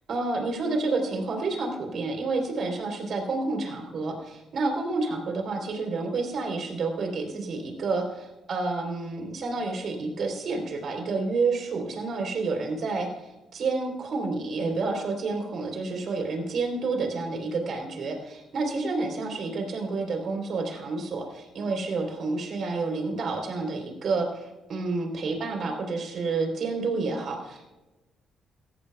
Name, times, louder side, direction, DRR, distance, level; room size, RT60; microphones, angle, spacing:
voice 1, 0.1-27.7, right 3 dB, 60° right, 3 dB, 3.6 m, -29 dB
15.5 x 15.5 x 2.3 m, 1.0 s
cardioid pair, 90°, 0 cm